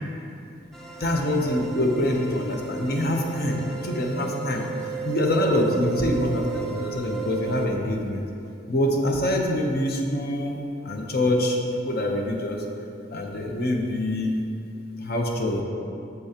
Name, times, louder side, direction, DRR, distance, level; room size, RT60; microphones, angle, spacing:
sound 1, 0.7-7.7, right 8 dB, ahead, 0.5 m, -34 dB
voice 1, 1.0-4.7 5.0-8.2 8.7-12.6 13.1-14.3 15.0-15.6, left 1 dB, 55° left, 1 dB, 0.8 m, -25 dB
8.3 x 6.9 x 2.9 m, 2.7 s
head